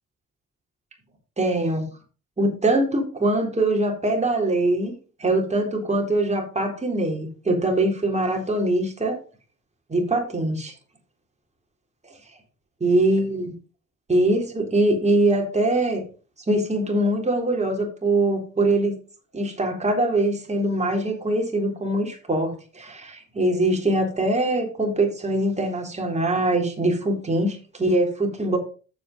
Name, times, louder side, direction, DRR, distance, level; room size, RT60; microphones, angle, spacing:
voice 1, 1.4-1.9 2.4-4.9 5.2-9.2 9.9-10.7 12.8-13.5 14.1-16.0 16.5-18.9 19.3-28.6, right 1 dB, 20° right, 1 dB, 3.8 m, -23 dB
8.0 x 6.8 x 5.3 m, 0.37 s
cardioid pair, 90°, 30 cm